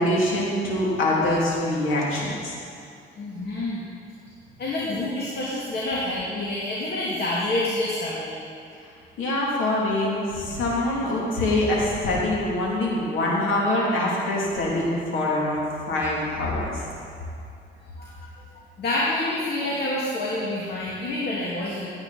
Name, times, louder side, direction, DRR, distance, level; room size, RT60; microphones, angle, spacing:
voice 1, 0.0-2.5 9.2-16.8, left 1 dB, 85° left, -4 dB, 2.8 m, -24 dB
voice 2, 3.2-3.8 4.6-8.4 18.0-18.1 18.8-21.9, left 1 dB, 55° left, -5 dB, 2.2 m, -27 dB
15.5 x 8.8 x 4.1 m, 2.5 s
cardioid pair, 90°, 20 cm